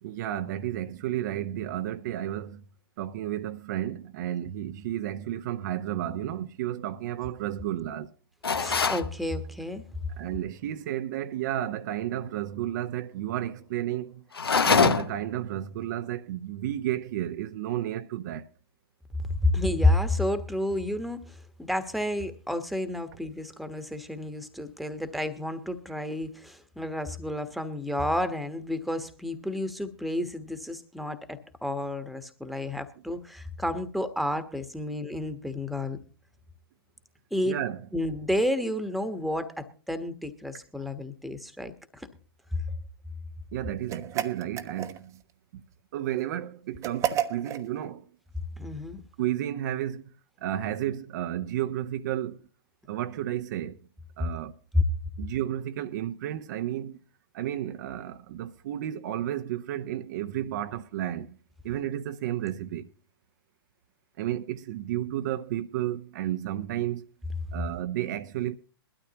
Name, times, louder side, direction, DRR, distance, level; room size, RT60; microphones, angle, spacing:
voice 1, 0.0-2.6 3.0-8.1 10.2-14.2 14.6-18.5 37.4-37.8 40.8-40.9 43.5-45.2 45.5-45.6 45.9-48.1 49.2-50.1 50.4-52.4 52.9-53.8 54.2-54.5 55.2-57.0 57.3-61.4 61.6-62.9 64.2-67.1 67.5-68.6, right 12 dB, 50° right, 0.8 m, -32 dB
sound 1, 8.4-9.1 14.3-15.3, left 5 dB, 80° left, 1.1 m, -23 dB
voice 2, 8.5-9.8 19.2-36.0 37.3-37.6 37.9-42.1 48.6-49.0 54.7-54.8, left 1 dB, ahead, 1.3 m, -30 dB
sound 2, 43.9-45.2 46.8-47.7, right 10 dB, 25° right, 1.0 m, -31 dB
21.0 x 12.5 x 2.9 m
figure-of-eight pair, 110°, 13 cm